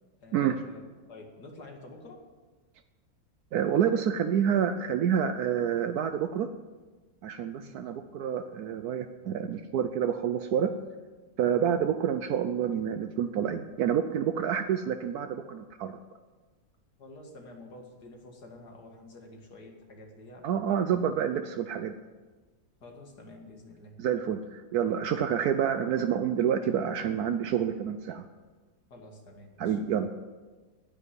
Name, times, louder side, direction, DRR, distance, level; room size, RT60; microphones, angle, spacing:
voice 1, 0.2-0.8 1.1-2.2 7.6-7.9 17.0-21.0 22.8-24.0 28.9-29.8, left 2 dB, 80° left, 2 dB, 2.6 m, -49 dB
voice 2, 3.5-6.5 7.2-10.7 11.4-15.9 20.4-22.0 24.0-28.2 29.6-30.1, right 8 dB, 75° right, 8 dB, 1.1 m, -28 dB
9.9 x 9.2 x 9.6 m, 1.3 s
omnidirectional pair, 1.7 m